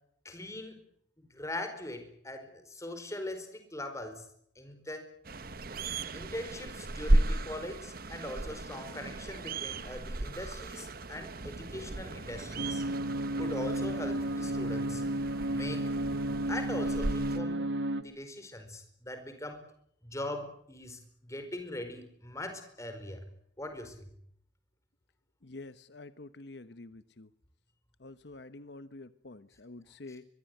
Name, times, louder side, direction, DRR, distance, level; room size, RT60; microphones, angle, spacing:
voice 1, 0.2-0.8 1.2-4.2 4.5-5.1 6.1-12.8 13.4-15.0 15.5-15.9 16.5-17.6 18.0-19.6 20.0-23.2 23.6-24.1, left 1 dB, 15° left, 7 dB, 4.7 m, -41 dB
sound 1, 5.2-17.4, right 1 dB, 50° right, 1.2 m, -34 dB
sound 2, 12.6-18.0, right 1 dB, 80° right, 1.7 m, -32 dB
voice 2, 25.4-27.3 28.0-30.3, left 2 dB, 60° left, 12 dB, 1.0 m, -48 dB
24.5 x 20.5 x 9.2 m, 0.70 s
head